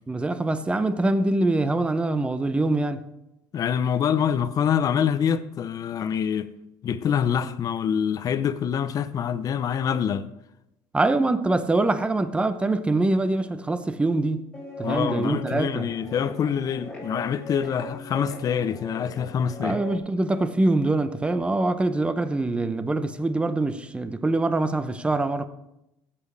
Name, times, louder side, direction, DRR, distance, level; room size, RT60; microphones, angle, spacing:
voice 1, 0.1-3.0 10.9-14.5 14.8-15.9 19.6-25.5, right 2 dB, 10° right, 0.7 m, -24 dB
voice 2, 3.5-6.5 6.8-10.3 14.8-19.8, left 8 dB, 40° left, 0.7 m, -25 dB
Guitar, 14.5-20.0, equal, 10° left, 2.7 m, -39 dB
14.5 x 8.6 x 3.3 m
cardioid pair, 120°, 9 cm